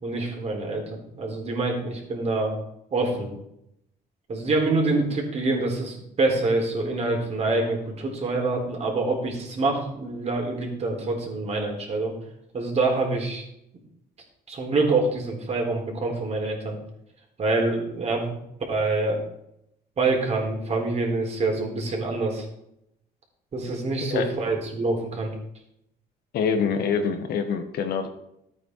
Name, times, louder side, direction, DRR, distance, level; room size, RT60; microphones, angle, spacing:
voice 1, 0.0-2.5 2.9-3.3 4.3-12.1 12.5-13.4 14.5-16.8 17.4-18.4 18.7-19.2 20.0-22.4 23.5-25.3, right 3 dB, 40° right, 0 dB, 4.0 m, -26 dB
voice 2, 26.3-28.1, left 6 dB, 70° left, 7 dB, 1.7 m, -25 dB
13.0 x 9.0 x 4.8 m, 0.80 s
cardioid pair, 110°, 17 cm